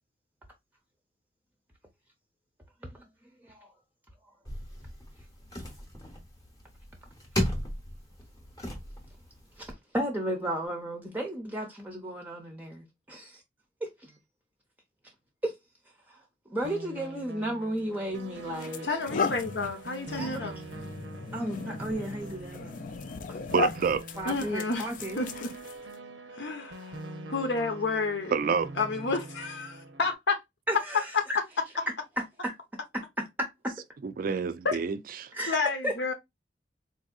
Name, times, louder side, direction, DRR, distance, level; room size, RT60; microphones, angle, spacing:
sound 1, 4.5-9.7, equal, 20° left, 0.8 m, -36 dB
voice 1, 9.9-13.4 13.8-14.2 15.4-15.5 16.1-16.2 16.5-18.9 20.1-20.5 21.3-22.8 23.3-23.4 24.2-25.2 30.7-31.4 32.4-32.5 33.4-33.7 35.3-35.6 35.8-35.9, right 1 dB, 10° right, 0.6 m, -34 dB
sound 2, 16.6-30.1, right 2 dB, 80° right, 0.7 m, -44 dB
sound 3, 17.8-18.0 18.5-25.9, left 4 dB, 50° left, 0.4 m, -36 dB
voice 2, 18.8-20.6 24.3-25.5 26.3-27.0 27.3-28.3 28.8-30.4 31.1-31.2 34.6-34.8 35.5-36.1, left 3 dB, 70° left, 0.8 m, -30 dB
voice 3, 23.5-24.0 28.3-28.7 34.0-35.3, right 6 dB, 50° right, 0.4 m, -28 dB
3.9 x 2.7 x 2.3 m
head